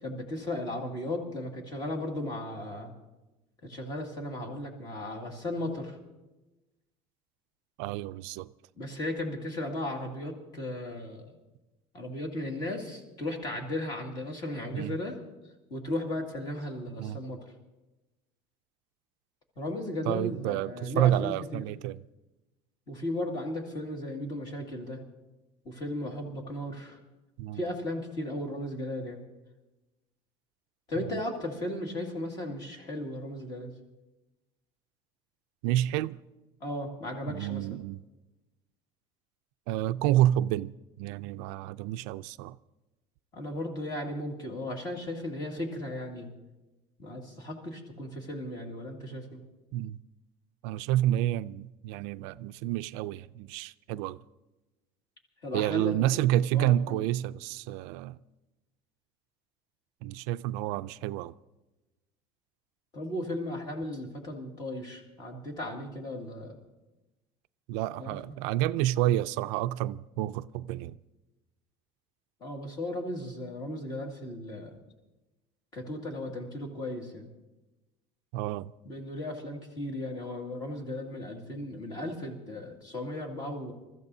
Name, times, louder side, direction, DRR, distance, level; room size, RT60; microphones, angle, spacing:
voice 1, 0.0-2.9 3.6-6.0 8.8-11.4 11.9-15.2 15.7-17.4 19.6-21.6 22.9-25.0 25.6-27.0 27.5-29.2 30.9-33.7 36.6-37.7 43.3-46.3 47.0-49.4 55.4-56.3 56.5-57.0 62.9-66.6 68.0-68.4 72.4-74.8 75.7-77.3 78.8-83.7, left 1 dB, 30° left, 2.2 m, -36 dB
voice 2, 7.8-8.5 14.7-14.9 17.0-17.2 20.1-22.0 27.4-27.6 35.6-36.2 37.3-38.0 39.7-42.6 49.7-50.0 50.6-54.2 55.5-58.2 60.0-61.3 67.7-71.0 78.3-78.7, right 13 dB, 80° right, 0.4 m, -29 dB
27.5 x 14.0 x 2.7 m
cardioid pair, 175°, 14 cm